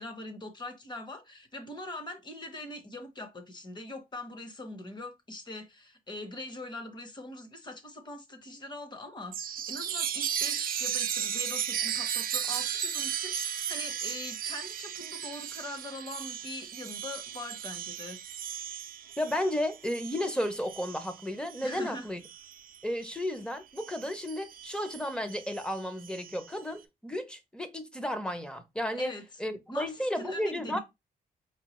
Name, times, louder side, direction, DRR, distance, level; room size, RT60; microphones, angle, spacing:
voice 1, 0.0-18.2 21.6-22.1 29.0-29.2 29.7-30.8, left 1 dB, 25° left, 0.9 m, -42 dB
Chime, 9.3-23.3 23.8-26.6, right 9 dB, 60° right, 0.4 m, -36 dB
voice 2, 19.2-22.2 22.8-29.1 29.4-30.8, left 1 dB, 5° left, 0.6 m, -33 dB
4.5 x 2.3 x 3.0 m
cardioid pair, 115°, 16 cm